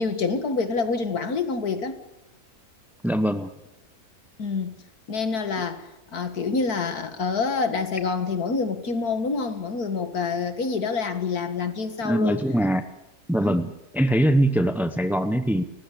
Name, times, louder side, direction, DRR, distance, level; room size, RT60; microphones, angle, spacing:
voice 1, 0.0-2.0 4.4-4.8 5.1-12.4 13.4-13.6, left 4 dB, 75° left, 2.3 m, -27 dB
voice 2, 3.0-3.5 12.0-12.9 13.3-15.6, right 1 dB, ahead, 0.5 m, -22 dB
30.0 x 15.0 x 8.5 m
omnidirectional pair, 1.6 m